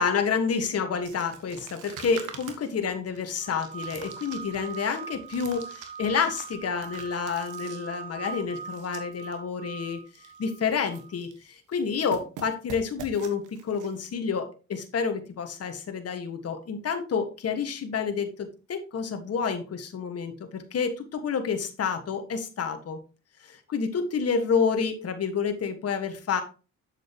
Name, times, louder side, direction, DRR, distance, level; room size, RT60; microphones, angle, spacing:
voice 1, 0.0-10.0 10.4-23.0 23.5-26.4, left 6 dB, 55° left, 7 dB, 1.6 m, -29 dB
sound 1, 1.0-9.3 9.6-9.7 10.1-10.4 10.6-11.4 11.7-14.1, right 7 dB, 85° right, 1.4 m, -45 dB
sound 2, 3.4-11.2, right 6 dB, 25° right, 0.6 m, -41 dB
8.0 x 7.2 x 3.0 m, 0.33 s
cardioid pair, 90°, 30 cm